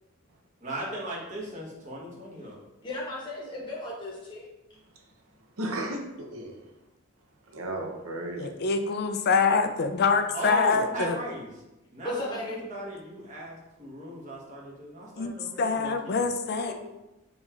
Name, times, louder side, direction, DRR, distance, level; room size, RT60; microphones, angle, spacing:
voice 1, 0.6-2.6 10.3-11.5 11.9-16.2, right 1 dB, 35° right, -5 dB, 1.1 m, -37 dB
voice 2, 2.8-4.5 12.0-12.6 16.6-16.7, left 1 dB, 20° left, -4 dB, 1.0 m, -35 dB
voice 3, 5.6-6.6 7.5-8.5, right 1 dB, 90° right, 1 dB, 0.7 m, -34 dB
voice 4, 8.4-11.2 15.2-16.7, left 4 dB, 50° left, 7 dB, 0.4 m, -25 dB
5.4 x 2.9 x 2.4 m, 0.98 s
head